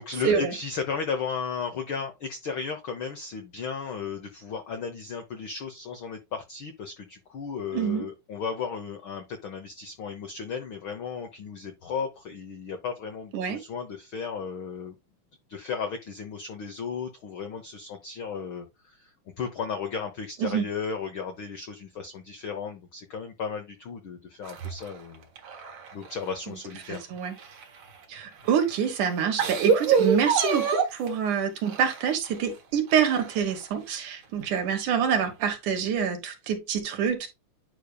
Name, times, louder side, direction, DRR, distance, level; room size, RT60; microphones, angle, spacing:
voice 1, 0.0-14.9 15.5-25.3 25.5-25.6 25.9-27.0, left 5 dB, 85° left, 1.1 m, -35 dB
voice 2, 7.7-8.1 13.3-13.6 20.4-20.7 26.9-27.4 28.1-37.3, right 7 dB, 75° right, 2.8 m, -26 dB
sound 1, 24.4-26.3 26.7-28.0 28.7-28.8 29.2-31.1 31.7-32.4 32.9-33.6 34.0-34.1 35.2-35.3, right 6 dB, 60° right, 2.4 m, -27 dB
9.9 x 5.2 x 2.3 m
omnidirectional pair, 3.6 m